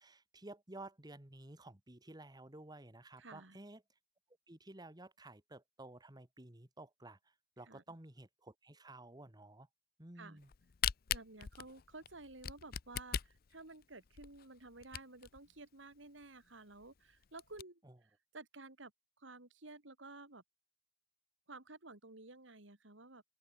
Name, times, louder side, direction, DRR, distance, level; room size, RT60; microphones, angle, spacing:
voice 1, 0.0-3.8 4.5-9.7 10.0-10.5 17.8-18.0, right 2 dB, 20° right, 1.8 m, -53 dB
voice 2, 3.2-3.6 7.7-7.8 10.1-10.4 11.1-18.9 19.2-20.4 21.5-23.2, right 2 dB, 75° right, 3.3 m, -53 dB
Camera, 10.4-15.4 15.9-16.0 16.2-16.3 16.8-16.9 17.2-17.6, left 9 dB, 50° left, 0.5 m, -39 dB
open air
head